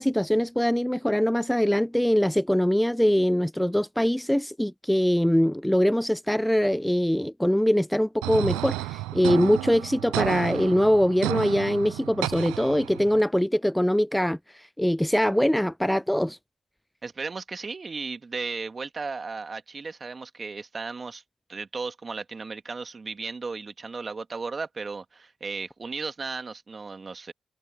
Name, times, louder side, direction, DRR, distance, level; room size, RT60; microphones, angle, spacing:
voice 1, 0.0-16.4, equal, 5° left, 0.3 m, -23 dB
sound 1, 8.2-13.2, right 19 dB, 90° right, 0.7 m, -32 dB
voice 2, 17.0-21.2 21.5-27.3, right 4 dB, 45° right, 2.2 m, -35 dB
hypercardioid pair, 40°, 0 cm